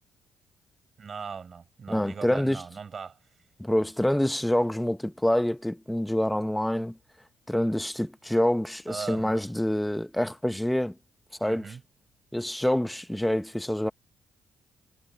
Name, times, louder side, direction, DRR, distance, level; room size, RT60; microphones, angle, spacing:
voice 1, 1.0-3.2 3.8-3.9 8.9-9.4 11.4-11.8, right 6 dB, 45° right, 8.0 m, -39 dB
voice 2, 1.9-2.6 3.6-7.0 7.5-10.9 11.4-11.7 12.3-13.9, left 1 dB, 5° left, 1.1 m, -26 dB
cardioid pair, 90°, 0 cm